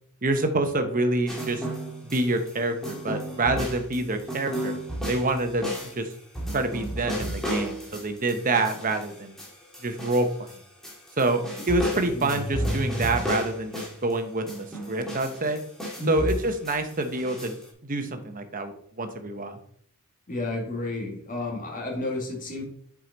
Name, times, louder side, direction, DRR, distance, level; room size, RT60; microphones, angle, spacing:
voice 1, 0.2-1.6 2.0-4.7 5.1-5.7 6.0-6.1 6.5-9.4 9.8-10.5 11.2-14.4 14.9-15.6 16.1-17.6 17.8-19.6, right 2 dB, 40° right, 7 dB, 0.9 m, -27 dB
sound 1, 1.3-2.5 2.8-10.6 10.8-14.1 14.5-17.6, equal, ahead, 1.9 m, -33 dB
voice 2, 12.1-12.4 16.0-16.3 20.3-22.6, left 2 dB, 40° left, -1 dB, 2.2 m, -31 dB
7.6 x 4.9 x 3.9 m, 0.63 s
head